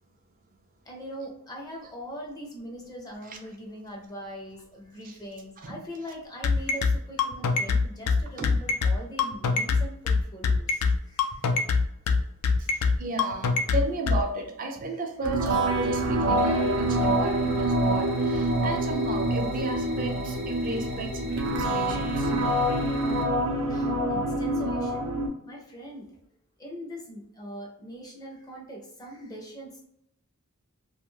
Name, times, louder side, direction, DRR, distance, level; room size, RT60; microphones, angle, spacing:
voice 1, 0.9-10.8 11.1-11.4 20.6-20.7 23.7-25.0 25.5-26.1 26.6-29.9, equal, 15° left, 0.5 m, -41 dB
sound 1, 6.4-14.2, left 4 dB, 90° left, 0.4 m, -23 dB
voice 2, 12.6-22.3, right 2 dB, 40° right, 0.4 m, -34 dB
sound 2, 15.2-25.3, right 1 dB, 85° right, 0.6 m, -26 dB
sound 3, 16.4-23.2, right 2 dB, 65° left, 0.9 m, -46 dB
2.3 x 2.2 x 3.0 m
head